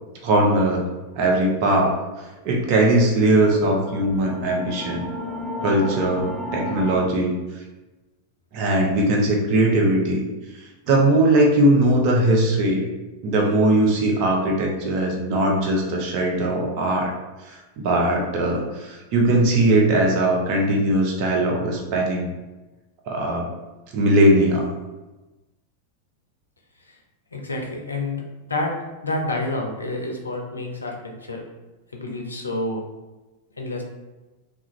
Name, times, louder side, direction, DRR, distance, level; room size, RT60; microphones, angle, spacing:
voice 1, 0.2-0.8 1.2-1.9 2.4-5.1 5.6-6.3 6.5-7.3 8.5-10.2 10.9-12.8 13.2-17.1 17.5-22.3 23.1-23.4 23.9-24.7, right 1 dB, 45° right, -1 dB, 0.6 m, -20 dB
sound 1, 2.5-6.9, left 1 dB, 5° left, 0.3 m, -33 dB
voice 2, 27.3-28.2 28.5-28.7 29.0-31.4 31.9-32.8 33.6-33.8, left 2 dB, 75° left, 1 dB, 0.4 m, -28 dB
2.3 x 2.2 x 3.0 m, 1.1 s
figure-of-eight pair, 90°, 0 cm